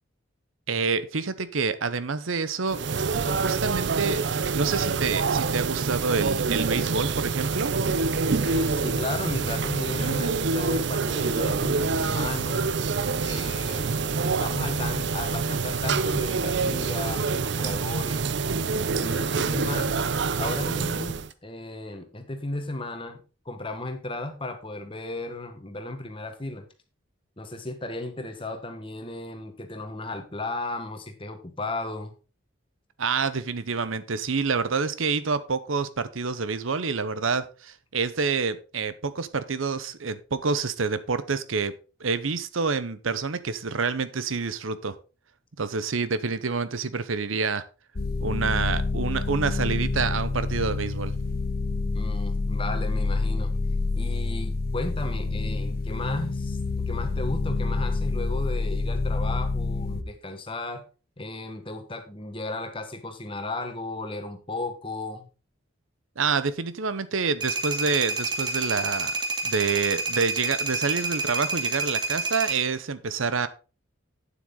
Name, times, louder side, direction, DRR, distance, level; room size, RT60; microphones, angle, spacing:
voice 1, 0.7-2.8 3.4-7.7 33.0-41.7 42.0-45.0 45.6-47.6 48.2-51.1 66.2-69.1 69.4-73.5, right 5 dB, 85° right, 14 dB, 0.8 m, -27 dB
sound 1, 2.7-21.3, right 4 dB, 60° right, 0.5 m, -26 dB
voice 2, 8.4-12.6 13.2-18.3 18.9-20.0 20.4-26.6 27.4-32.1 51.9-53.5 53.9-56.6 56.9-60.8 61.2-65.3, left 2 dB, 25° left, 7 dB, 1.4 m, -35 dB
sound 2, 48.0-60.0, left 3 dB, 50° left, 1.0 m, -27 dB
sound 3, 67.4-72.6, right 3 dB, 20° right, 1.7 m, -28 dB
9.2 x 7.7 x 3.9 m, 0.34 s
head